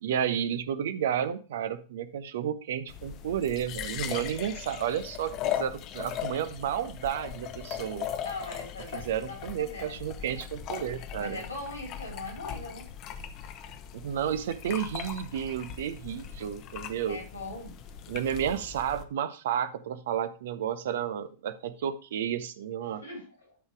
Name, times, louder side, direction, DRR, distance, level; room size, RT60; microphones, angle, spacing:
voice 1, 0.0-8.1 8.9-11.4 13.9-17.2 18.1-23.0, right 9 dB, 60° right, 13 dB, 0.7 m, -32 dB
sound 1, 2.9-19.0, left 10 dB, 40° left, 0.8 m, -39 dB
voice 2, 8.2-10.0 11.2-12.9 17.1-17.7 23.0-23.6, left 2 dB, 80° left, 2 dB, 3.1 m, -40 dB
12.0 x 4.1 x 4.7 m, 0.36 s
figure-of-eight pair, 90°, 0 cm